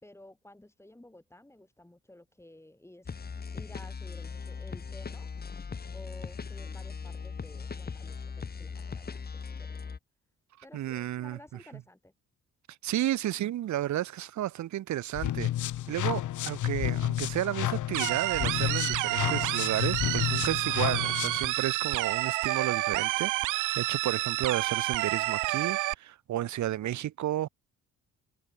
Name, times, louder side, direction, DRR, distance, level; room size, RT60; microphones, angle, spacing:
voice 1, 0.0-3.1 3.5-5.3 5.9-9.2 9.5-9.8 10.6-12.0, left 1 dB, 10° left, 6.3 m, -53 dB
sound 1, 3.1-10.0, left 5 dB, 30° left, 2.1 m, -39 dB
voice 2, 10.7-11.8 12.8-15.5 15.9-27.5, right 13 dB, 70° right, 1.2 m, -32 dB
sound 2, 15.1-21.5, left 13 dB, 80° left, 3.6 m, -31 dB
sound 3, 17.9-25.9, right 19 dB, 85° right, 0.6 m, -29 dB
open air
cardioid pair, 90°, 30 cm